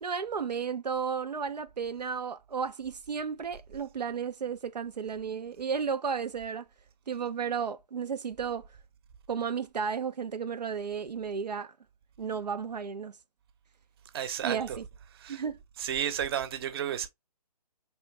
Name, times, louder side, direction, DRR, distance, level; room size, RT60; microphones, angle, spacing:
voice 1, 0.0-6.7 7.1-8.7 9.3-11.7 12.2-13.2 14.4-14.8 15.3-15.6, right 6 dB, 90° right, 0.5 m, -33 dB
voice 2, 14.1-14.8 15.1-15.4 15.8-17.1, right 9 dB, 40° right, 0.8 m, -32 dB
4.7 x 3.1 x 2.8 m
figure-of-eight pair, 140°, 20 cm